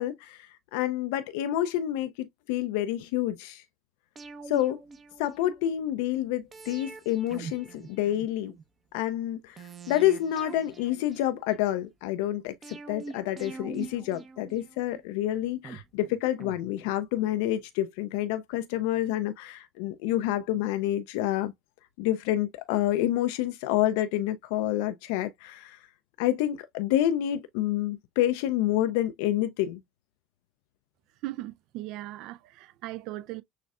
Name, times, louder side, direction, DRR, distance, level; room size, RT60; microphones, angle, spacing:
voice 1, 0.0-3.6 4.5-4.8 5.2-8.5 8.9-21.5 22.0-25.8 26.2-29.8, left 13 dB, 75° left, 0.4 m, -28 dB
sound 1, 4.2-5.7 6.5-8.6 9.6-11.8 12.6-15.0 15.6-17.3 17.6-17.7, right 4 dB, 35° right, 0.8 m, -44 dB
voice 2, 31.2-33.4, right 16 dB, 65° right, 0.4 m, -38 dB
6.4 x 2.4 x 2.3 m
hypercardioid pair, 70°, 0 cm